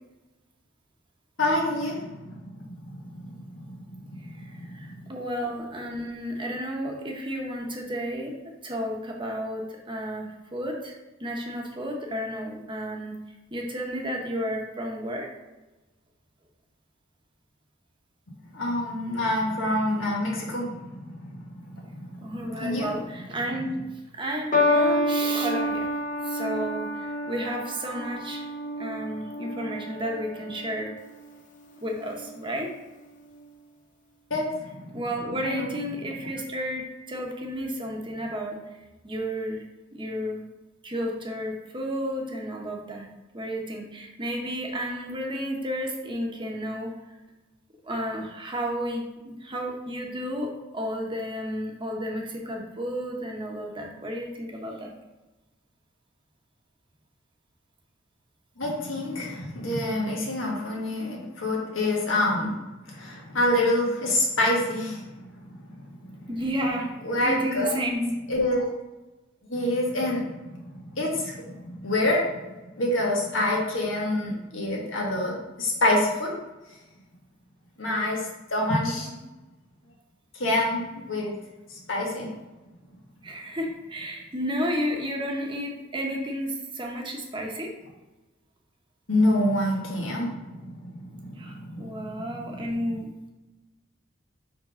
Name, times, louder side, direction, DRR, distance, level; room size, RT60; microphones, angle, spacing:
voice 1, 1.4-5.1 18.5-22.9 34.3-35.0 35.4-35.7 58.6-62.6 62.9-66.3 67.0-67.7 68.3-68.7 69.5-72.5 72.8-76.3 77.8-78.2 78.5-79.1 80.4-81.3 81.9-82.3 89.1-93.0, left 1 dB, 85° left, -2 dB, 1.7 m, -27 dB
voice 2, 4.4-10.9 11.2-13.1 13.5-15.3 22.2-23.7 24.1-25.9 26.2-28.5 28.8-30.9 31.8-32.7 34.9-38.6 39.0-39.6 39.9-40.4 40.8-43.1 43.3-46.9 47.8-54.9 66.3-66.9 67.2-68.1 78.8-79.1 83.2-87.7 91.4-93.3, equal, 25° right, 0 dB, 1.0 m, -32 dB
sound 1, 24.5-31.0 31.9-32.3, left 1 dB, 40° left, 0.7 m, -28 dB
4.8 x 3.7 x 5.6 m, 1.1 s
head